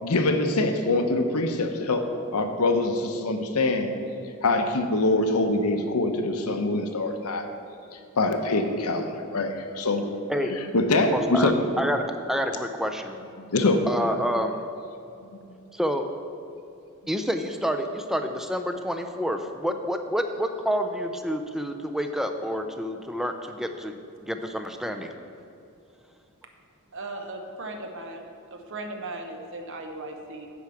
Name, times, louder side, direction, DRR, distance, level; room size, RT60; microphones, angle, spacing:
voice 1, 0.0-3.9 4.4-7.4 8.2-10.1 10.5-11.5 13.4-13.8 15.2-15.6, left 2 dB, 90° left, 5 dB, 0.8 m, -24 dB
voice 2, 10.9-13.2 13.9-14.6 15.7-16.1 17.1-25.1, equal, ahead, 6 dB, 0.5 m, -28 dB
voice 3, 26.9-30.5, right 2 dB, 60° right, 4 dB, 1.0 m, -37 dB
10.5 x 4.7 x 7.0 m, 2.7 s
head